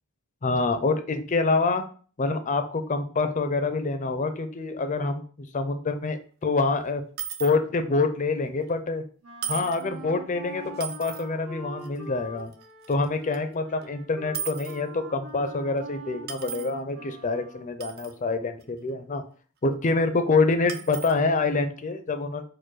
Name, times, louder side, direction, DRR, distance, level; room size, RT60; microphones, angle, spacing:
voice 1, 0.4-1.9 2.2-7.0 7.4-9.0 9.5-12.5 12.9-19.2 19.6-22.4, left 3 dB, 35° left, 8 dB, 0.5 m, -26 dB
sound 1, 6.6-6.7 7.2-7.5 8.6-8.7 9.4-9.9 10.8-11.2 11.8-12.0 12.5-13.1 13.3-13.4 13.8-13.9 14.3-14.8 15.5-15.6 16.3-16.7 17.8-18.2 18.6-18.7 19.9-20.0 20.7-21.2, right 9 dB, 45° right, 0.4 m, -35 dB
Wind instrument woodwind instrument, 9.2-17.8, right 2 dB, 80° right, 1.6 m, -44 dB
4.5 x 2.2 x 4.6 m, 0.41 s
head